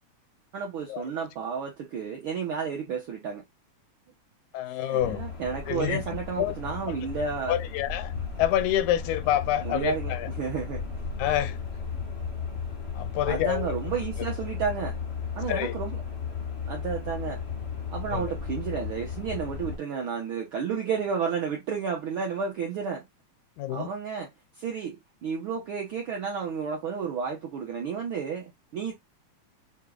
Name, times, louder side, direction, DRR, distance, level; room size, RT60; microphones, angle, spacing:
voice 1, 0.5-3.4 4.7-7.6 9.6-10.8 13.3-15.0 15.4-16.0 16.7-17.4 17.9-23.0 23.7-24.3 24.6-28.9, right 6 dB, 75° right, 1.2 m, -32 dB
voice 2, 4.5-5.2 5.7-6.0 6.4-6.6 7.5-8.1 8.4-10.3 11.2-11.6 12.9-13.7 15.5-15.8 18.1-18.3 23.6-23.9, left 12 dB, 85° left, 1.9 m, -27 dB
sound 1, 5.0-19.8, left 6 dB, 50° left, 0.7 m, -35 dB
6.6 x 2.2 x 2.4 m
omnidirectional pair, 3.4 m